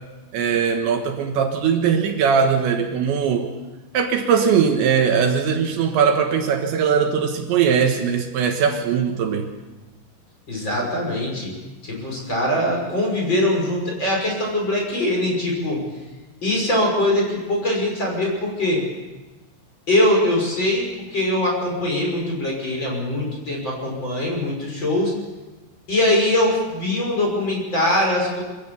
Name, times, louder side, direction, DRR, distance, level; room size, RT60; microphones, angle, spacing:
voice 1, 0.3-3.5 3.9-9.5, right 7 dB, 75° right, 4 dB, 3.6 m, -20 dB
voice 2, 10.5-11.5 11.8-15.8 16.4-18.8 19.9-20.8 21.1-25.1 25.9-28.4, left 1 dB, 25° left, -1 dB, 6.2 m, -22 dB
24.5 x 16.0 x 7.1 m, 1.1 s
omnidirectional pair, 5.5 m